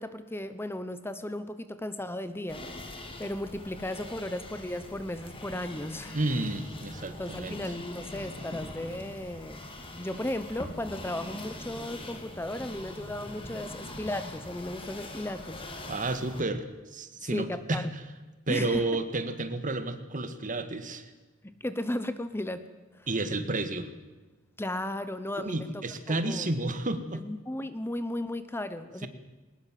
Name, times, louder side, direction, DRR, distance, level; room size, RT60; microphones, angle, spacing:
voice 1, 0.0-2.9 3.2-6.2 7.1-9.7 10.0-15.6 17.2-17.9 18.5-18.8 21.4-22.7 22.9-23.1 24.6-25.8 26.1-26.5 27.2-29.1, left 1 dB, 10° left, 12 dB, 1.0 m, -35 dB
sound 1, 2.5-16.4, left 1 dB, 25° left, 3.3 m, -43 dB
voice 2, 6.1-7.6 15.8-17.8 18.5-21.1 23.1-23.9 25.4-27.2, right 2 dB, 40° right, 10 dB, 1.9 m, -31 dB
21.5 x 20.0 x 7.7 m, 1.2 s
head